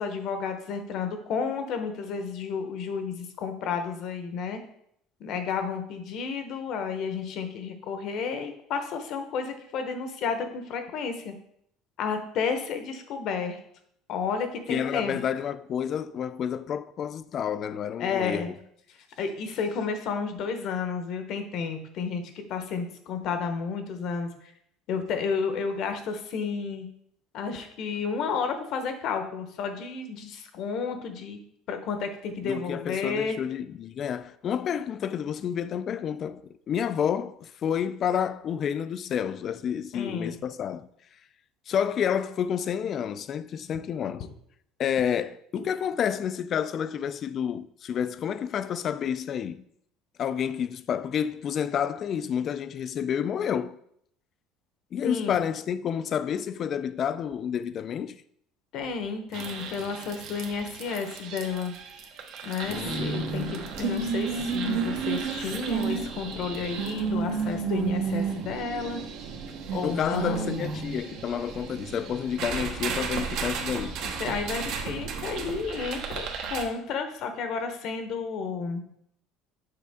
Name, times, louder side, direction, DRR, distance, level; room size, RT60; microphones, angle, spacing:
voice 1, 0.0-4.6 5.2-11.3 12.0-13.6 14.1-15.3 18.0-18.5 19.2-24.3 24.9-26.9 27.3-31.4 31.7-33.4 39.9-40.3 55.0-55.4 58.7-61.7 62.4-69.0 69.7-70.5 74.0-78.8, left 5 dB, 55° left, 0.9 m, -31 dB
voice 2, 14.7-18.5 32.4-40.9 41.7-44.3 44.8-49.6 50.2-53.8 54.9-58.2 62.7-63.3 69.8-74.0, left 8 dB, 40° left, 0.3 m, -29 dB
sound 1, 59.3-76.6, right 5 dB, 65° right, 1.0 m, -32 dB
6.7 x 4.5 x 3.5 m
cardioid pair, 130°, 0 cm